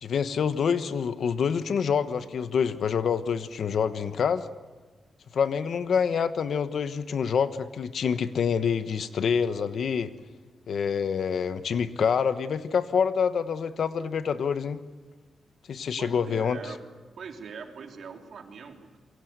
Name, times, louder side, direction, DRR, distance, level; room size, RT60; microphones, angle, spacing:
voice 1, 0.0-4.4 5.3-10.1 10.7-14.8 15.7-16.6, left 6 dB, 65° left, 12 dB, 1.1 m, -26 dB
voice 2, 16.0-16.8 17.2-19.0, right 5 dB, 65° right, 3 dB, 3.3 m, -42 dB
27.5 x 23.5 x 8.1 m, 1.3 s
wide cardioid pair, 150°, 0 cm